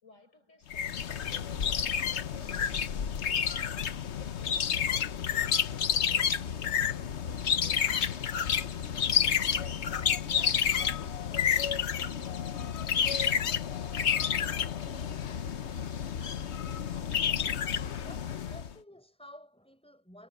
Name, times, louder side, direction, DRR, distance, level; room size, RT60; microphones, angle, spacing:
voice 1, 0.0-4.8 5.5-11.2, left 3 dB, 75° left, 5.6 m, -59 dB
sound 1, 0.7-18.7, left 8 dB, 60° left, 1.2 m, -30 dB
voice 2, 18.1-20.3, equal, 5° left, 4.6 m, -52 dB
omnidirectional pair, 1.3 m